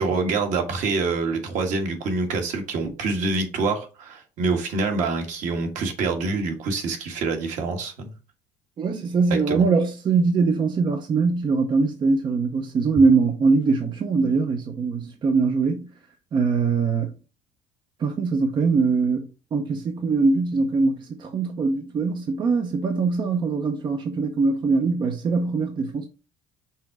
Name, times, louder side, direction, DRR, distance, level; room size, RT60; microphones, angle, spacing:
voice 1, 0.0-8.1 9.3-9.6, right 3 dB, 55° right, 1.7 m, -26 dB
voice 2, 8.8-15.9 16.3-17.1 18.0-26.1, right 4 dB, 30° right, 0.7 m, -22 dB
5.7 x 3.8 x 4.6 m
cardioid pair, 140°, 15 cm